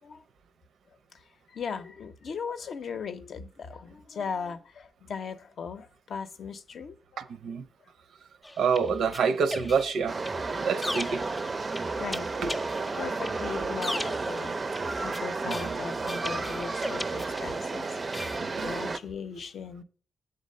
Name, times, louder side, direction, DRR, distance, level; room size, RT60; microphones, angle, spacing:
voice 1, 1.5-7.0 12.0-12.3 12.8-17.9 18.6-19.8, left 6 dB, 65° left, 0.6 m, -38 dB
voice 2, 7.2-7.6 8.6-10.1 10.6-11.2 12.4-12.5 15.4-15.8 18.4-18.8, right 6 dB, 80° right, 0.6 m, -27 dB
sound 1, 8.4-17.8 18.1-18.4, left 1 dB, 10° left, 0.6 m, -38 dB
sound 2, 10.1-19.0, right 3 dB, 30° right, 0.4 m, -32 dB
7.5 x 3.9 x 6.5 m
wide cardioid pair, 130°, 0 cm